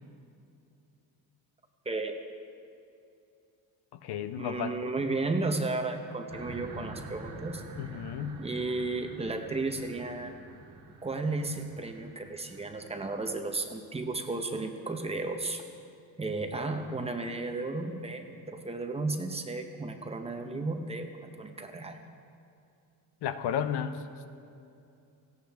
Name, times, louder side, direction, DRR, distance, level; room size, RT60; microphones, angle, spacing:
voice 1, 1.9-2.2 4.4-7.6 8.4-10.3 11.0-15.6 16.2-22.0, right 3 dB, 15° right, 5 dB, 0.8 m, -33 dB
voice 2, 3.9-4.9 7.8-8.4 23.2-24.0, left 8 dB, 85° left, 10 dB, 0.9 m, -33 dB
sound 1, 6.3-13.8, right 3 dB, 70° right, 2.1 m, -47 dB
17.5 x 15.5 x 3.5 m, 2.7 s
cardioid pair, 170°, 39 cm